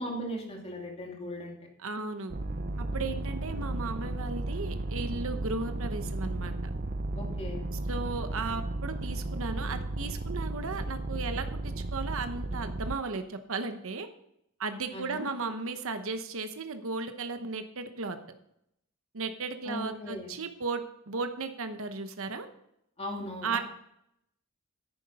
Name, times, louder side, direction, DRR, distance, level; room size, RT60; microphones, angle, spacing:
voice 1, 0.0-1.6 7.1-7.6 14.9-15.3 19.7-20.3 23.0-23.6, equal, 30° left, 0 dB, 2.5 m, -38 dB
voice 2, 1.8-2.3 2.8-6.5 7.9-14.1 14.6-18.2 19.1-22.5 23.4-23.6, right 4 dB, 65° right, 8 dB, 1.0 m, -35 dB
sound 1, 2.3-13.0, right 2 dB, 40° right, 0.6 m, -34 dB
11.0 x 9.5 x 4.2 m, 0.76 s
head